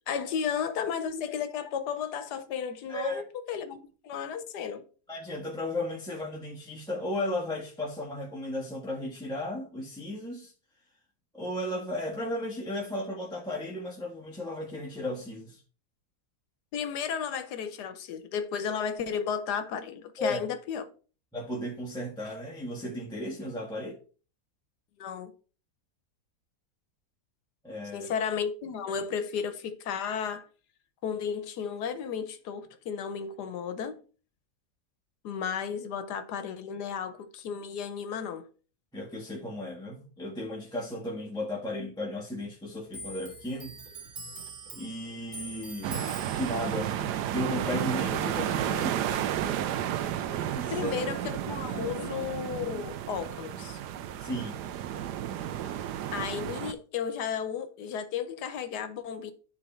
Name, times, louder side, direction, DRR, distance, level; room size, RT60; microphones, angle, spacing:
voice 1, 0.1-4.8 16.7-20.9 25.0-25.3 27.9-30.5 31.0-34.0 35.2-38.5 50.7-53.8 56.1-59.3, left 7 dB, 80° left, 1.4 m, -33 dB
voice 2, 2.9-3.2 5.1-10.5 11.3-15.6 20.2-20.4 21.3-24.0 27.6-28.1 38.9-43.7 44.7-47.0 47.3-49.3 50.5-51.0 54.2-54.6 55.6-55.7, left 1 dB, 5° left, 1.3 m, -35 dB
Clock, 42.9-49.9 50.2-51.5 51.8-52.6, right 2 dB, 55° right, 1.9 m, -45 dB
sound 1, 45.8-56.7, right 10 dB, 90° right, 1.2 m, -32 dB
9.7 x 3.7 x 4.3 m
omnidirectional pair, 1.7 m